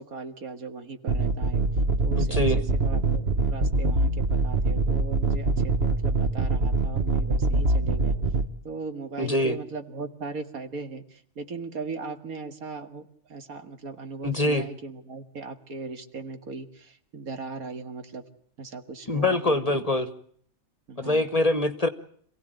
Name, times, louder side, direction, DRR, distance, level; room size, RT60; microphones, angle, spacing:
voice 1, 0.0-1.6 2.0-4.1 4.4-8.2 8.6-18.2 18.6-19.9 20.9-21.2, right 4 dB, 80° right, 7 dB, 2.3 m, -38 dB
sound 1, 1.1-8.5, right 2 dB, 45° right, 1.5 m, -24 dB
voice 2, 2.2-2.6 9.2-9.6 14.2-14.6 19.1-20.1 21.0-21.9, left 1 dB, 25° left, 11 dB, 1.3 m, -24 dB
27.0 x 16.5 x 9.0 m, 0.63 s
omnidirectional pair, 1.5 m